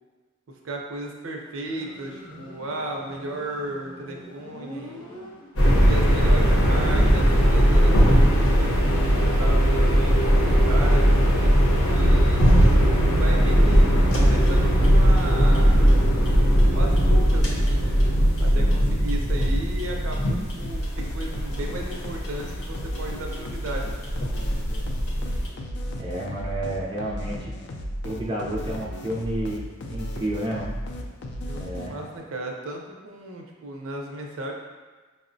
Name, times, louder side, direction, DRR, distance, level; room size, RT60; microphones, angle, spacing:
voice 1, 0.6-5.0 5.6-11.1 11.9-13.9 14.1-16.0 16.7-17.8 18.4-23.9 31.4-34.5, right 1 dB, 70° right, 1 dB, 0.5 m, -35 dB
Motorcycle, 1.6-5.9, equal, 25° left, 0.7 m, -44 dB
sound 1, 5.6-25.5, equal, 85° left, 0.8 m, -19 dB
sound 2, 20.6-32.2, equal, 55° left, 0.3 m, -35 dB
voice 2, 26.0-27.5 28.0-30.8 31.5-32.0, right 1 dB, 20° right, -6 dB, 0.4 m, -31 dB
5.1 x 2.0 x 2.5 m, 1.3 s
head